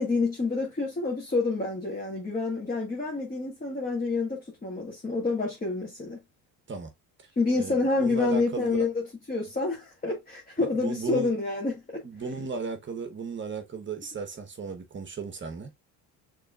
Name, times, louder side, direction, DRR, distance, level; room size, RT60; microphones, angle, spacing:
voice 1, 0.0-6.2 7.4-12.0, left 3 dB, 20° left, 1.8 m, -28 dB
voice 2, 7.6-8.9 10.6-11.3 12.0-15.7, right 4 dB, 30° right, 1.1 m, -35 dB
6.5 x 3.4 x 2.4 m
cardioid pair, 115°, 39 cm